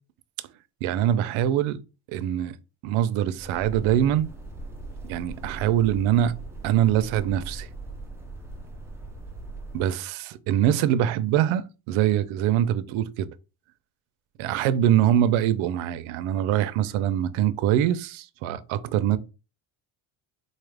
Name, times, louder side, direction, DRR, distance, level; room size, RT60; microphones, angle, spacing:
voice 1, 0.8-1.8 2.1-2.5 2.8-4.3 5.0-6.3 6.6-7.7 9.7-13.3 14.4-19.2, right 11 dB, 75° right, 0.6 m, -23 dB
sound 1, 3.4-9.8, right 2 dB, 5° right, 0.4 m, -39 dB
4.1 x 2.4 x 3.3 m
cardioid pair, 145°, 48 cm